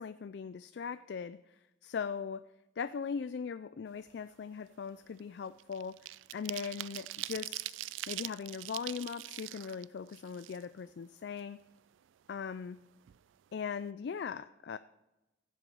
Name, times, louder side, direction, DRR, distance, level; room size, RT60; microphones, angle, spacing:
voice 1, 0.0-2.5 2.8-7.8 8.1-11.6 12.3-12.8 13.5-14.8, left 6 dB, 60° left, 13 dB, 0.3 m, -40 dB
sound 1, 4.0-4.2 4.6-11.0 11.4-11.5 11.8-12.8 13.1-13.2 13.5-13.8, right 16 dB, 80° right, 0.3 m, -43 dB
15.5 x 7.7 x 5.4 m, 1.0 s
head